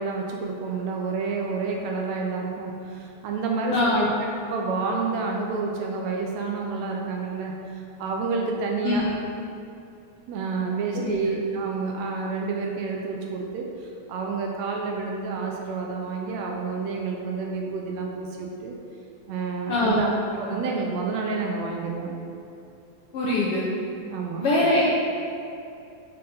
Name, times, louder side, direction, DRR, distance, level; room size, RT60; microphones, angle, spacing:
voice 1, 0.0-9.1 10.3-18.7 19.3-22.1 24.1-24.5, right 4 dB, 80° right, 0 dB, 1.7 m, -29 dB
voice 2, 3.7-4.1 8.8-9.0 11.0-11.2 19.7-20.0 23.1-23.7 24.4-24.8, left 2 dB, 75° left, -6 dB, 1.4 m, -22 dB
5.6 x 4.3 x 4.9 m, 2.7 s
omnidirectional pair, 3.4 m